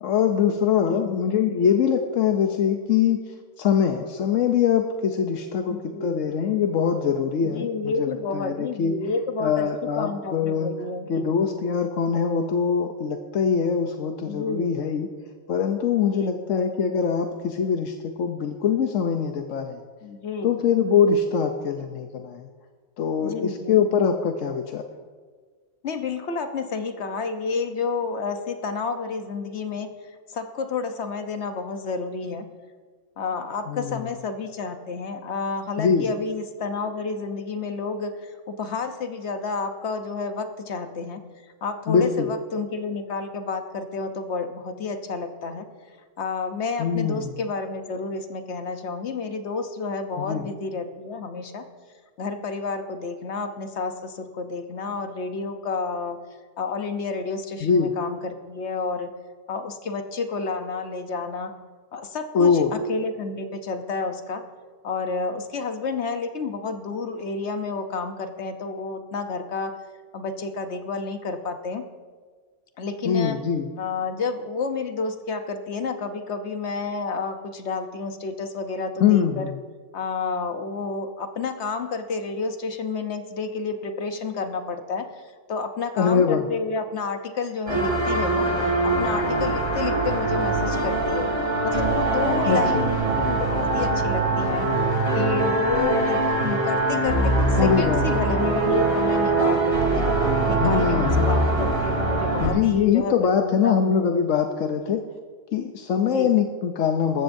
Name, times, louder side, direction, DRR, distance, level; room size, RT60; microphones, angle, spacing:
voice 1, 0.0-3.2 3.6-8.9 9.4-10.7 11.1-15.1 15.5-19.8 20.4-22.5 23.0-24.8 33.7-34.1 35.8-36.1 41.9-42.3 46.8-47.3 50.2-50.5 57.6-57.9 62.3-62.7 73.0-73.7 79.0-79.6 86.0-86.5 92.5-92.8 97.6-98.2 100.6-101.3 102.4-105.0 105.5-107.2, left 7 dB, 90° left, 5 dB, 1.1 m, -23 dB
voice 2, 0.8-1.2 5.7-6.2 7.4-9.7 10.0-11.3 14.3-14.7 16.0-16.5 20.0-20.6 23.2-23.8 25.8-29.9 30.3-32.5 33.2-41.2 41.6-45.7 46.2-51.6 52.2-56.2 56.6-59.1 59.5-61.5 61.9-64.4 64.8-69.7 70.1-71.8 72.8-73.4 73.8-79.5 79.9-88.5 88.8-91.3 91.6-94.7 95.1-104.3 106.0-106.4, left 4 dB, 65° left, 7 dB, 1.2 m, -30 dB
sound 1, 87.7-102.5, right 2 dB, 50° right, 3.5 m, -22 dB
19.0 x 14.5 x 2.7 m, 1.5 s
omnidirectional pair, 1.3 m